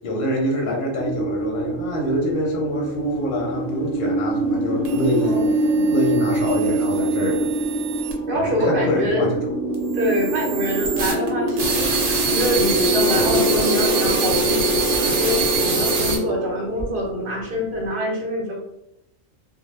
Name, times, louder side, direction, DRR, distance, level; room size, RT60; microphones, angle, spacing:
voice 1, 0.0-5.4 5.9-7.5 8.3-9.3, equal, 50° left, -1 dB, 0.7 m, -25 dB
sound 1, 1.0-17.9, right 1 dB, 10° left, 0.5 m, -24 dB
sound 2, 4.8-8.1 9.7-16.2, right 5 dB, 75° right, 0.9 m, -26 dB
voice 2, 5.2-5.9 8.3-9.3 9.9-14.7 14.9-18.6, equal, 55° right, -1 dB, 0.7 m, -25 dB
2.1 x 2.1 x 3.1 m, 0.82 s
omnidirectional pair, 1.3 m